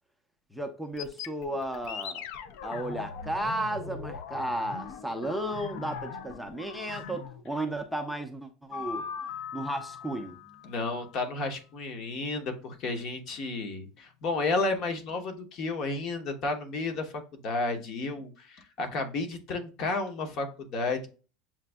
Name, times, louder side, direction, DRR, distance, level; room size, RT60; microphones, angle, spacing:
voice 1, 0.5-2.3 2.6-9.1 9.5-10.4, right 1 dB, ahead, 0.5 m, -34 dB
sound 1, 0.9-7.5 8.7-11.3, left 6 dB, 60° left, 0.5 m, -40 dB
voice 2, 10.6-21.1, left 3 dB, 40° left, 0.9 m, -32 dB
7.3 x 2.6 x 2.2 m
cardioid pair, 165°, 0 cm